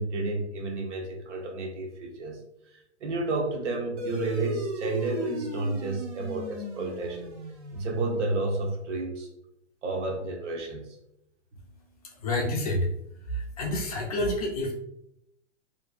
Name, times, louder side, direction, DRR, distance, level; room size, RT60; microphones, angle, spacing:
voice 1, 0.0-2.4 3.0-7.3 7.7-9.3 9.8-11.0, right 2 dB, 75° right, 2 dB, 0.7 m, -31 dB
sound 1, 4.0-8.8, equal, 35° right, 0.4 m, -37 dB
voice 2, 12.2-12.9 13.3-14.7, left 1 dB, 35° left, -1 dB, 0.4 m, -28 dB
2.5 x 2.2 x 2.3 m, 0.82 s
hypercardioid pair, 155°, 35 cm